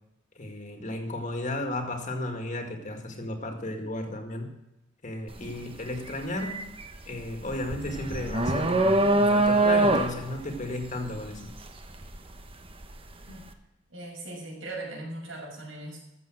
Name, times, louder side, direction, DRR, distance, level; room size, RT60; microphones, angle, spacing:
voice 1, 0.4-4.6 5.0-6.6 7.1-11.5, left 1 dB, 40° left, 4 dB, 2.1 m, -34 dB
sound 1, 5.3-5.5 5.9-12.9, right 2 dB, 30° right, 1.1 m, -24 dB
voice 2, 13.9-16.0, right 2 dB, 90° right, -1 dB, 6.2 m, -39 dB
14.0 x 7.6 x 7.8 m, 0.93 s
head